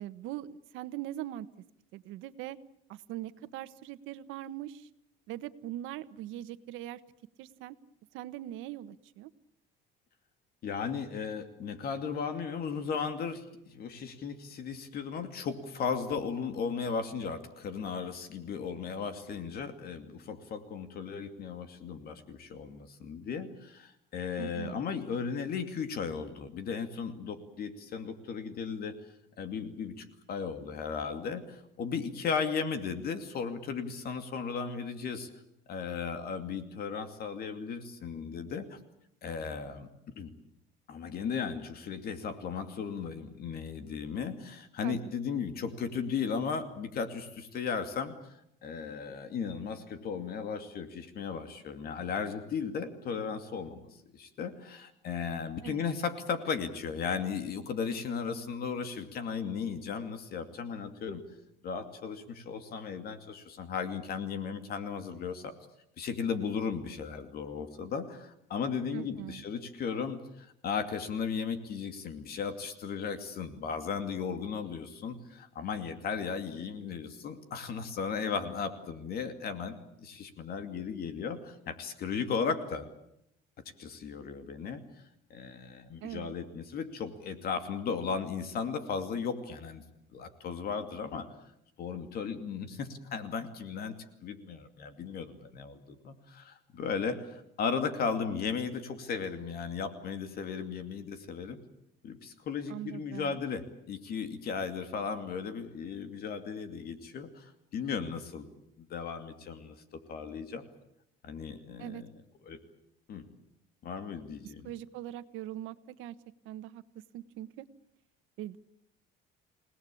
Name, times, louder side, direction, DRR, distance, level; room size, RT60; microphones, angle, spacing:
voice 1, 0.0-1.5 1.9-2.6 2.9-4.9 5.3-7.0 7.4-7.7 8.1-9.3 24.4-24.8 44.8-45.1 55.6-55.8 68.9-69.4 86.0-86.3 102.7-103.4 111.8-112.0 114.4-116.1 116.4-116.8 117.1-117.6 118.4-118.6, right 13 dB, 75° right, 13 dB, 1.4 m, -41 dB
voice 2, 10.6-29.1 29.4-35.3 35.7-38.8 39.2-39.9 40.2-40.3 40.9-61.2 61.6-65.5 66.0-82.9 83.8-84.8 85.3-89.8 90.1-91.3 91.8-101.6 102.0-108.5 108.8-110.6 111.2-112.1 112.5-112.6 113.1-113.2 113.8-114.7, left 6 dB, 50° left, 9 dB, 2.5 m, -36 dB
29.0 x 18.5 x 8.6 m, 0.77 s
cardioid pair, 140°, 21 cm